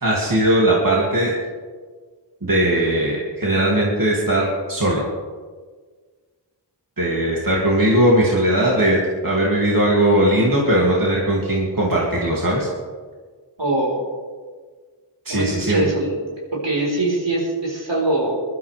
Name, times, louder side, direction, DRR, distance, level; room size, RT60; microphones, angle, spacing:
voice 1, 0.0-1.4 2.4-5.0 7.0-12.7 15.2-15.9, right 1 dB, 50° right, -4 dB, 2.7 m, -19 dB
voice 2, 13.6-14.0 15.3-16.2 16.5-18.3, right 2 dB, 75° right, -3 dB, 4.7 m, -22 dB
21.5 x 12.0 x 3.5 m, 1.5 s
wide cardioid pair, 60°, 44 cm